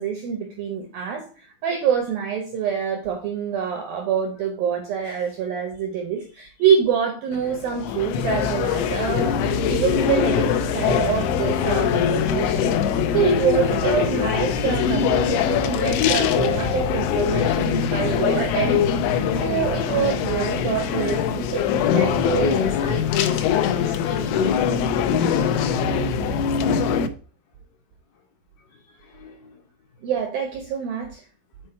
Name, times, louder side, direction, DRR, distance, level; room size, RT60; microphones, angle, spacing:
voice 1, 0.0-12.8 13.1-21.6 21.9-22.5 30.0-31.2, right 7 dB, 75° right, 2.1 m, -26 dB
sound 1, 7.3-27.1, left 8 dB, 85° left, 3.1 m, -22 dB
sound 2, 9.8-20.0, right 1 dB, 45° right, 0.9 m, -36 dB
voice 2, 20.9-24.6 28.9-29.6, left 6 dB, 70° left, 2.4 m, -29 dB
8.4 x 4.4 x 4.3 m
omnidirectional pair, 5.6 m